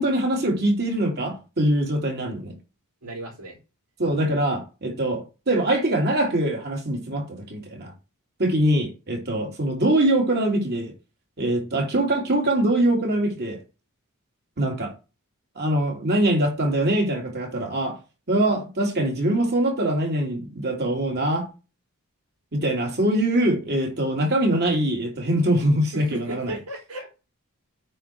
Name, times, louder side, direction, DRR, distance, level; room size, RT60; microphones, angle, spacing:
voice 1, 0.0-2.5 4.0-7.9 8.4-10.9 11.4-13.6 14.6-14.9 15.5-18.0 18.3-21.5 22.5-26.6, right 1 dB, 50° right, 3.1 m, -23 dB
voice 2, 3.0-3.6 25.9-27.2, right 1 dB, 85° right, 4.3 m, -35 dB
8.9 x 4.5 x 6.1 m
head